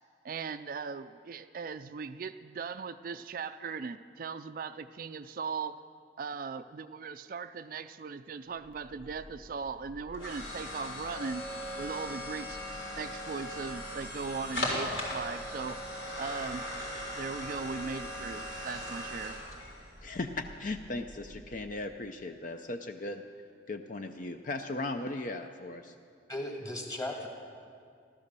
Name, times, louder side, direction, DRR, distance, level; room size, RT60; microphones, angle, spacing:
voice 1, 0.2-5.8 6.2-11.4 11.8-12.6 13.0-15.8 16.2-16.6 17.1-19.4, right 5 dB, 50° right, 11 dB, 0.4 m, -38 dB
sound 1, 8.7-21.7, left 1 dB, 90° left, 4.0 m, -39 dB
voice 2, 20.0-23.3 23.7-25.9, left 2 dB, 45° left, 6 dB, 0.5 m, -37 dB
voice 3, 26.3-27.3, left 1 dB, 20° left, 1 dB, 1.8 m, -36 dB
15.0 x 12.5 x 6.8 m, 2.3 s
head